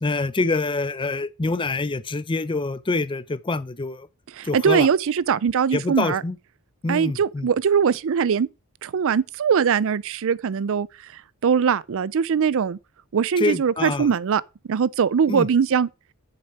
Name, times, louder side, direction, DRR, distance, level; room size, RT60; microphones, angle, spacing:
voice 1, 0.0-4.1 4.4-4.9 5.7-6.4 6.8-7.5 13.4-14.1 15.3-15.5, left 3 dB, 20° left, 0.5 m, -26 dB
voice 2, 4.3-6.2 6.9-8.5 8.8-10.9 11.1-12.8 13.1-14.4 14.7-15.9, right 7 dB, 65° right, 0.4 m, -21 dB
8.0 x 6.9 x 4.7 m
head